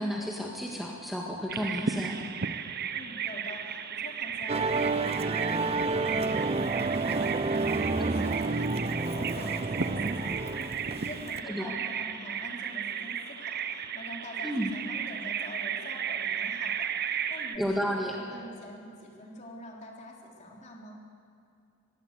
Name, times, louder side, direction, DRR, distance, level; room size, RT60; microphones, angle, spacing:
voice 1, 0.0-2.2 8.2-8.3 11.5-11.7 14.4-14.7 17.6-18.2, equal, ahead, -1 dB, 1.8 m, -32 dB
Bird vocalization bird call bird song, 1.5-17.6, right 7 dB, 50° right, 1.0 m, -35 dB
voice 2, 2.9-21.0, left 1 dB, 35° left, -1 dB, 3.5 m, -45 dB
Musical instrument, 4.5-11.4, right 3 dB, 30° right, 0.6 m, -29 dB
21.5 x 16.5 x 8.2 m, 2.6 s
head